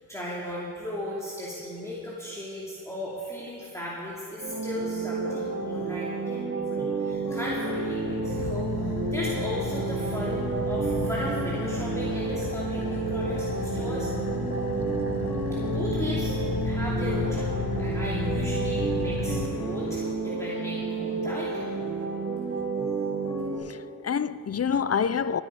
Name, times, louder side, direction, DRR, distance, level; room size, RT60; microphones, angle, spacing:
voice 1, 0.1-14.1 15.7-21.7, left 1 dB, 10° left, 2.7 m, -36 dB
sound 1, 4.4-23.6, right 4 dB, 40° right, 4.0 m, -30 dB
Car / Idling, 7.2-20.1, left 4 dB, 80° left, 1.1 m, -33 dB
voice 2, 23.6-25.4, left 7 dB, 45° left, 0.5 m, -27 dB
20.5 x 8.9 x 4.8 m
cardioid pair, 50°, 36 cm